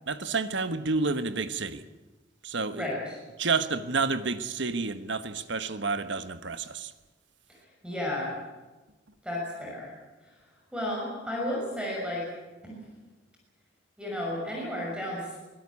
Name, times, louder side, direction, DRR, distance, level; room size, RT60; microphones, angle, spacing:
voice 1, 0.1-1.8 2.4-2.9 3.4-6.9, right 4 dB, 65° right, 11 dB, 1.3 m, -29 dB
voice 2, 7.5-8.4 9.2-9.9 10.2-10.3 10.7-12.3 12.6-12.8 14.0-15.4, left 1 dB, 5° right, -2 dB, 6.2 m, -33 dB
23.5 x 17.5 x 8.5 m, 1.2 s
head